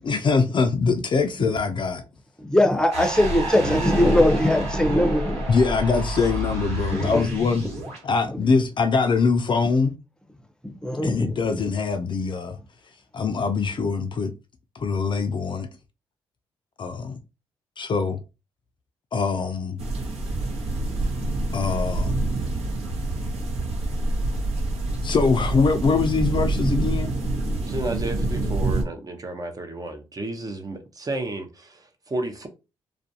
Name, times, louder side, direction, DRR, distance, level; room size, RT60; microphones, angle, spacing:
voice 1, 0.0-2.0 5.5-7.6 8.0-9.9 11.0-12.6 13.1-14.3 14.8-15.7 16.8-17.2 17.8-18.2 19.1-19.8 21.5-22.2 25.0-27.1, left 4 dB, 45° left, 0.4 m, -23 dB
voice 2, 2.4-5.8 6.9-7.3 8.3-8.4 10.6-11.6, left 1 dB, 5° left, 0.7 m, -21 dB
sound 1, 2.9-8.0, equal, 85° right, 1.2 m, -29 dB
sound 2, 19.8-28.8, right 2 dB, 65° right, 0.8 m, -26 dB
voice 3, 27.7-32.5, right 2 dB, 30° right, 0.6 m, -32 dB
2.4 x 2.2 x 2.7 m
supercardioid pair, 50°, 12 cm